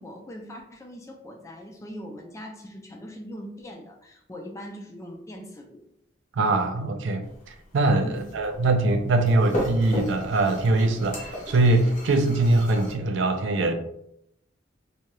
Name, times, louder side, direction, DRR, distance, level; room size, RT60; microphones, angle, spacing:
voice 1, 0.0-5.9 8.0-8.6, equal, 15° left, 2 dB, 0.3 m, -41 dB
voice 2, 6.3-13.7, right 2 dB, 65° right, 7 dB, 0.4 m, -22 dB
sound 1, 7.2-12.9, equal, 40° left, 0.7 m, -36 dB
2.7 x 2.2 x 3.0 m, 0.76 s
head